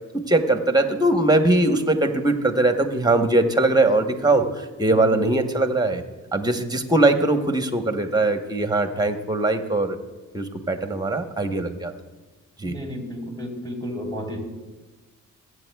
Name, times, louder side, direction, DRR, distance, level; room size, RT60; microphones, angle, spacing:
voice 1, 0.1-6.0 6.3-10.0 10.3-11.9 12.6-12.8, right 2 dB, 10° right, 7 dB, 1.0 m, -21 dB
voice 2, 12.6-14.4, equal, 15° left, 0 dB, 3.3 m, -32 dB
22.0 x 8.2 x 2.3 m, 1.2 s
cardioid pair, 80°, 33 cm